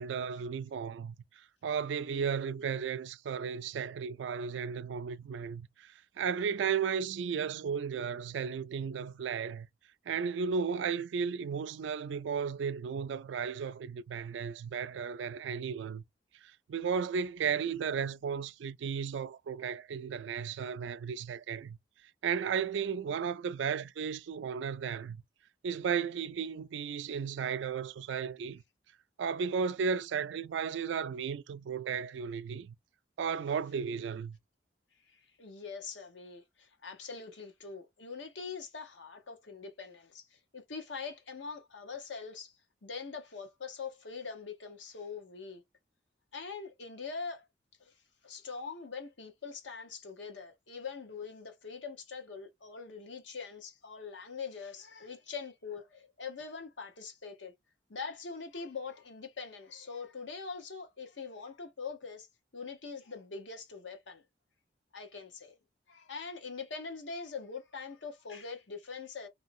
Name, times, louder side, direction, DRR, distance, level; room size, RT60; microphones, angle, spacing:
voice 1, 0.0-9.7 10.1-16.0 16.4-21.8 22.2-25.2 25.6-28.6 29.2-32.7 33.2-34.4, right 6 dB, 80° right, 0.3 m, -34 dB
voice 2, 35.0-45.6 46.3-47.5 47.8-47.9 48.2-57.5 57.9-62.3 62.5-64.2 64.9-65.6 65.9-69.3, left 5 dB, 80° left, 1.0 m, -43 dB
3.1 x 2.8 x 2.6 m
head